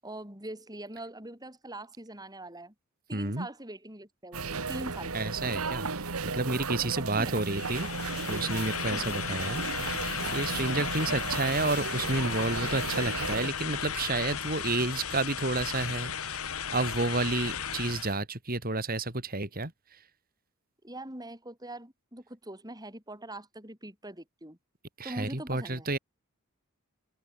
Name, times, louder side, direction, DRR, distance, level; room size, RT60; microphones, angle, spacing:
voice 1, 0.0-2.7 3.1-5.1 6.8-7.4 8.9-9.2 20.8-24.6 25.0-25.9, right 1 dB, 20° right, 6.8 m, -42 dB
voice 2, 3.1-3.5 5.1-7.9 8.3-9.6 10.3-16.4 16.7-19.7 25.0-26.0, right 2 dB, 40° right, 3.2 m, -30 dB
sound 1, 4.3-13.5, right 4 dB, 85° right, 1.7 m, -35 dB
sound 2, 7.3-18.2, left 7 dB, 80° left, 2.1 m, -35 dB
open air
head